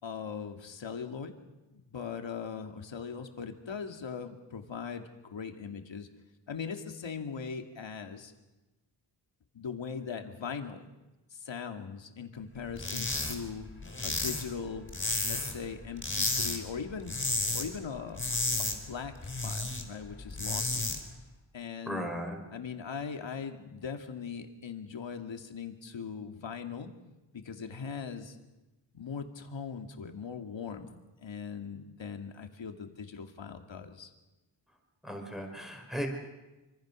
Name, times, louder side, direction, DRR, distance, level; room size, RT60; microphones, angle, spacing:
voice 1, 0.0-1.3 1.7-6.1 6.5-8.3 9.5-10.9 11.3-13.7 14.0-14.9 15.2-17.2 17.5-21.0 21.5-22.1 22.5-26.9 27.3-28.4 28.9-30.9 31.2-34.1, left 6 dB, 80° left, 5 dB, 2.5 m, -40 dB
sound 1, 12.8-13.4 13.6-15.6 16.0-16.6 16.9-17.7 18.0-19.8 20.2-21.0, left 2 dB, 25° left, 5.0 m, -32 dB
voice 2, 21.9-22.4 35.0-36.1, equal, ahead, 2 dB, 5.5 m, -36 dB
27.0 x 25.5 x 6.4 m, 1.1 s
wide cardioid pair, 120°, 45 cm